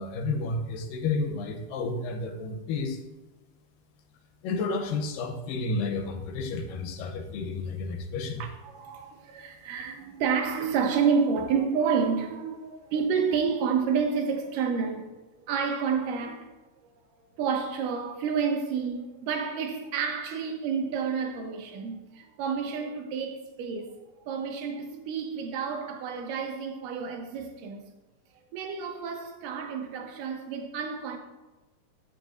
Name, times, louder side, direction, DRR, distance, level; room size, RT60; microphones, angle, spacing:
voice 1, 0.0-3.0 4.4-8.4, left 3 dB, 85° left, 2.5 m, -31 dB
voice 2, 8.4-15.1 15.4-16.5 17.4-24.0 24.3-27.9 28.5-31.2, right 6 dB, 80° right, 2.5 m, -29 dB
14.0 x 6.0 x 2.6 m
omnidirectional pair, 3.9 m